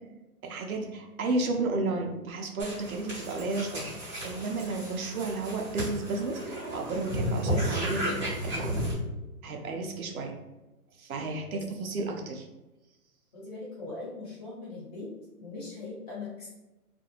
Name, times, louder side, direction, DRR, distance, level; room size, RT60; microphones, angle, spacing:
voice 1, 0.4-8.7 9.4-10.3 11.0-12.5, right 3 dB, 65° right, 2 dB, 0.6 m, -33 dB
sound 1, 2.6-8.9, equal, 5° right, 0.8 m, -33 dB
voice 2, 13.3-15.1 15.4-16.5, left 3 dB, 25° left, -8 dB, 1.1 m, -40 dB
2.4 x 2.2 x 2.8 m, 1.0 s
hypercardioid pair, 150°, 46 cm